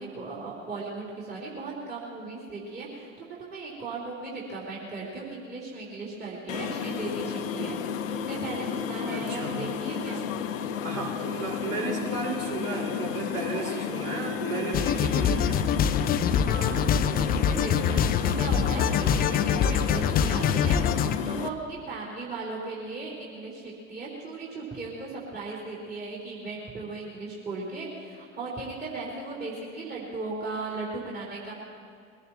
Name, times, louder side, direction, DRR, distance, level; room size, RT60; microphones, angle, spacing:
voice 1, 0.0-7.8 8.1-10.3 16.2-31.5, right 3 dB, 25° right, -6 dB, 3.9 m, -37 dB
sound 1, 6.5-21.5, left 7 dB, 70° left, 1.0 m, -32 dB
voice 2, 9.1-9.6 10.8-15.6, right 3 dB, 45° right, -4 dB, 4.6 m, -33 dB
sound 2, 14.7-21.2, left 8 dB, 20° left, 0.5 m, -24 dB
23.0 x 17.5 x 3.0 m, 2.2 s
figure-of-eight pair, 85°, 41 cm